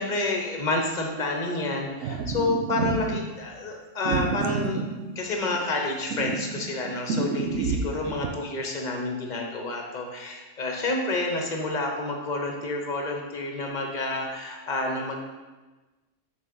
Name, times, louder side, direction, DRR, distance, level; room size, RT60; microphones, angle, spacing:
voice 1, 0.0-4.8 5.1-15.2, left 2 dB, 40° left, 2 dB, 1.0 m, -29 dB
sound 1, 2.0-3.2 4.0-5.6 6.1-8.3, right 4 dB, 80° right, 1.0 m, -29 dB
6.3 x 4.2 x 5.3 m, 1.2 s
omnidirectional pair, 1.3 m